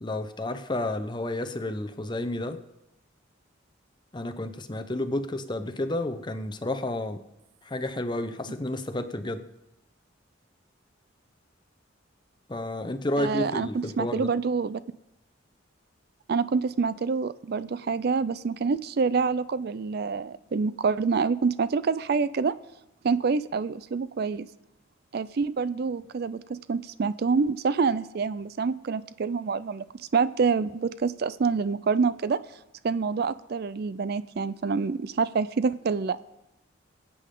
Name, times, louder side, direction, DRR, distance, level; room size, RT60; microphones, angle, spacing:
voice 1, 0.0-2.6 4.1-7.2 7.6-9.5 12.5-14.3, left 1 dB, 25° left, 9 dB, 0.8 m, -31 dB
voice 2, 13.2-14.8 16.3-22.5 23.0-24.5 25.1-32.4 32.8-36.2, right 5 dB, 55° right, 16 dB, 0.4 m, -27 dB
22.0 x 8.5 x 3.8 m, 0.92 s
head